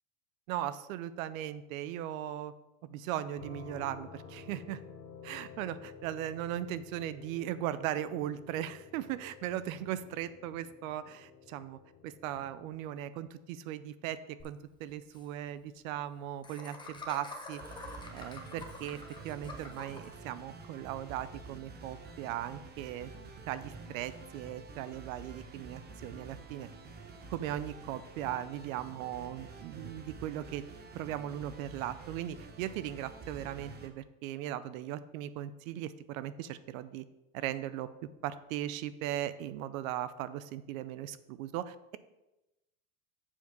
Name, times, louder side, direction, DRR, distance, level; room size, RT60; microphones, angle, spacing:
voice 1, 0.5-2.5 2.9-4.8 5.2-17.6 18.1-23.1 23.5-26.7 27.3-30.6 30.9-37.0 37.3-37.9 38.2-42.0, right 12 dB, 70° right, 15 dB, 0.6 m, -38 dB
sound 1, 3.4-12.9, left 6 dB, 60° left, 1.6 m, -52 dB
Laughter, 14.4-14.5 14.8-14.9 15.1-15.2 16.4-20.1, left 3 dB, 10° left, 1.0 m, -47 dB
sound 2, 17.6-33.9, right 3 dB, 25° right, 0.9 m, -49 dB
7.2 x 4.7 x 5.2 m, 0.98 s
supercardioid pair, 125°, 42 cm